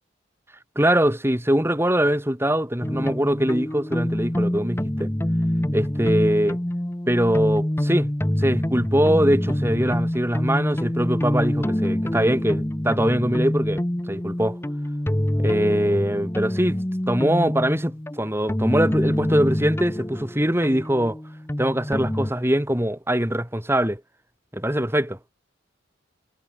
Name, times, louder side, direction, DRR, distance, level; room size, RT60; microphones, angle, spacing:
voice 1, 0.8-5.1 5.7-6.6 7.1-8.1 8.4-14.6 15.4-16.8 17.1-21.2 21.6-24.0 24.5-25.2, equal, 10° right, 3.8 m, -22 dB
sound 1, 2.8-22.3, left 1 dB, 10° left, 0.9 m, -26 dB
head